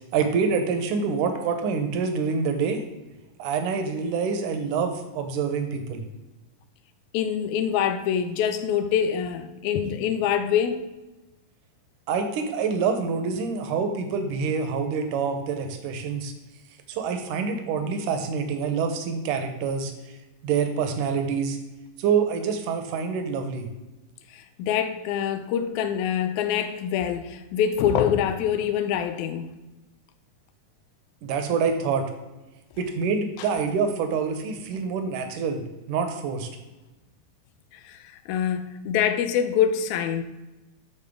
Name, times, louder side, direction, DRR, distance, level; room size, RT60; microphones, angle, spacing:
voice 1, 0.1-2.8 3.4-6.0 12.1-16.3 16.9-19.9 20.4-21.6 22.0-23.7 31.2-32.1 32.8-35.6 35.9-36.5, right 5 dB, 75° right, 2.3 m, -26 dB
voice 2, 7.1-10.9 24.3-29.5 33.4-33.5 37.7-40.2, left 8 dB, 75° left, 1.9 m, -25 dB
12.0 x 4.6 x 3.6 m
omnidirectional pair, 3.8 m